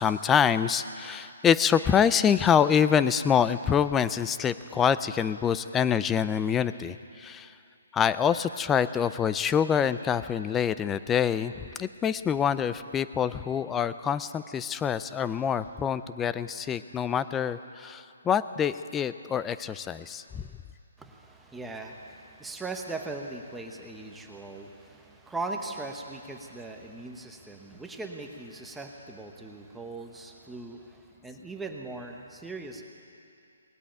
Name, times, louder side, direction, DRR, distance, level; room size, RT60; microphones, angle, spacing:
voice 1, 0.0-7.6 7.9-20.5, left 8 dB, 10° left, 14 dB, 0.3 m, -26 dB
voice 2, 21.0-32.8, right 3 dB, 5° right, 2 dB, 0.9 m, -39 dB
18.5 x 8.4 x 9.0 m, 2.5 s
hypercardioid pair, 160°, 0 cm